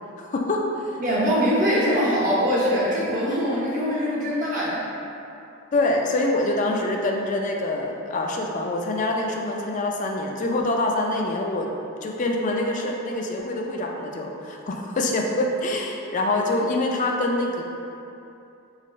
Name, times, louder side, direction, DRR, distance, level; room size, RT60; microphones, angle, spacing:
voice 1, 0.2-1.0 5.7-11.7 12.0-17.6, left 2 dB, 35° left, 1 dB, 0.3 m, -25 dB
voice 2, 1.0-4.8, equal, 40° right, -7 dB, 0.8 m, -22 dB
4.0 x 3.0 x 2.4 m, 2.7 s
head